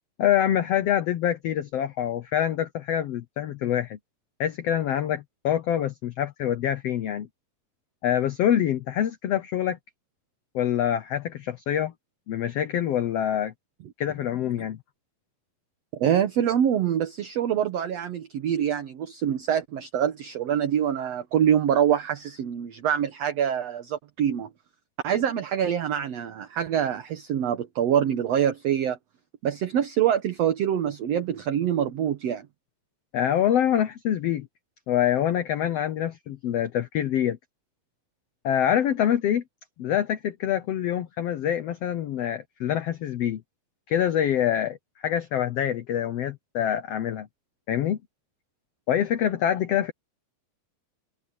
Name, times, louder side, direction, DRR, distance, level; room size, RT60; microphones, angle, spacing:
voice 1, 0.2-4.0 4.4-7.3 8.0-9.8 10.5-11.9 12.3-13.5 14.0-14.8 33.1-34.5 34.9-37.4 38.4-39.4 39.8-43.4 43.9-47.3 47.7-48.0 48.9-49.9, left 10 dB, 85° left, 1.4 m, -25 dB
voice 2, 16.0-24.5 25.0-29.0 29.4-32.5, right 9 dB, 60° right, 1.9 m, -25 dB
omnidirectional pair, 4.1 m